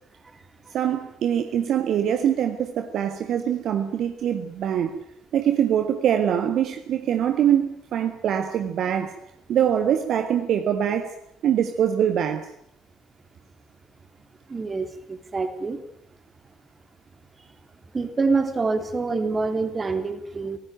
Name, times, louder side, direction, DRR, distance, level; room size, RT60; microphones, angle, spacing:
voice 1, 0.7-5.0 5.3-9.2 9.5-11.1 11.4-12.5, right 9 dB, 50° right, 1.6 m, -23 dB
voice 2, 14.5-15.8 17.9-20.6, right 4 dB, 25° right, 3.5 m, -26 dB
24.0 x 18.5 x 9.1 m
figure-of-eight pair, 55°, 0 cm